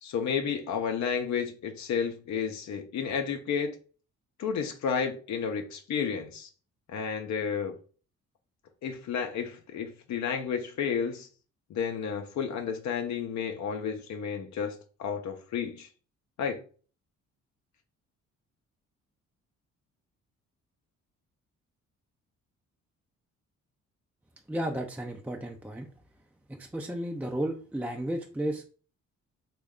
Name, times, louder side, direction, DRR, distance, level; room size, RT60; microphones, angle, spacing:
voice 1, 0.0-3.8 4.4-6.5 6.9-7.7 8.8-11.3 11.7-15.9 16.4-16.6, left 6 dB, 65° left, 0.6 m, -31 dB
voice 2, 24.5-25.9 26.5-28.7, right 1 dB, 5° right, 0.4 m, -33 dB
3.1 x 2.3 x 3.6 m
cardioid pair, 90°, 30 cm